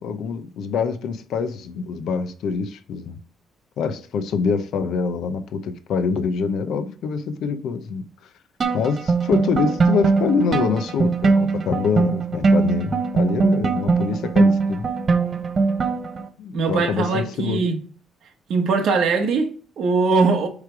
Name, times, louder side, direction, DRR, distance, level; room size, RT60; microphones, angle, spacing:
voice 1, 0.0-3.2 3.8-8.1 8.7-14.9 16.4-17.6, left 5 dB, 65° left, 0.8 m, -25 dB
sound 1, 8.6-16.3, right 4 dB, 30° right, 0.6 m, -21 dB
voice 2, 16.5-17.8 18.5-20.5, right 4 dB, 60° right, 1.3 m, -21 dB
8.4 x 3.3 x 4.6 m
cardioid pair, 160°, 0 cm